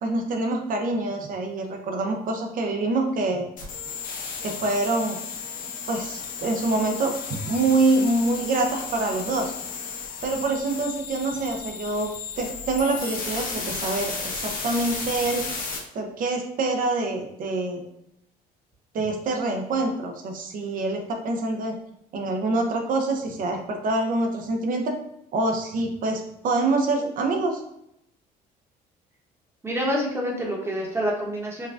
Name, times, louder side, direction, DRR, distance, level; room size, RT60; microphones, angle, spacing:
voice 1, 0.0-3.4 4.4-5.2 5.9-9.5 10.2-12.1 12.4-15.4 15.9-17.8 18.9-21.7 22.1-24.9 25.3-27.6, right 2 dB, 55° right, 3 dB, 0.7 m, -25 dB
sound 1, 3.6-15.8, left 5 dB, 50° left, 1.0 m, -34 dB
voice 2, 29.6-31.7, equal, 15° right, -1 dB, 1.0 m, -27 dB
5.5 x 2.3 x 2.5 m, 0.78 s
cardioid pair, 110°, 17 cm